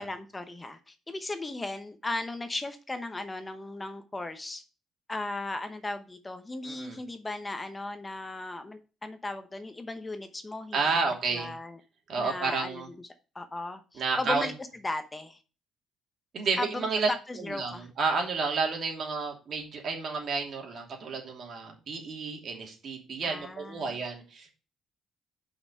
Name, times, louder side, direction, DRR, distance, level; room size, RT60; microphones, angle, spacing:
voice 1, 0.0-4.6 5.1-10.8 11.3-11.8 12.2-12.8 13.3-14.5 14.8-15.4 16.6-16.9 17.3-17.9 23.2-23.8, left 2 dB, 20° left, 9 dB, 0.9 m, -36 dB
voice 2, 6.6-7.0 10.7-11.5 12.1-12.9 13.9-14.5 16.3-17.1 17.4-24.6, right 4 dB, 55° right, 1 dB, 2.9 m, -31 dB
5.8 x 5.6 x 6.5 m, 0.34 s
cardioid pair, 95°, 0 cm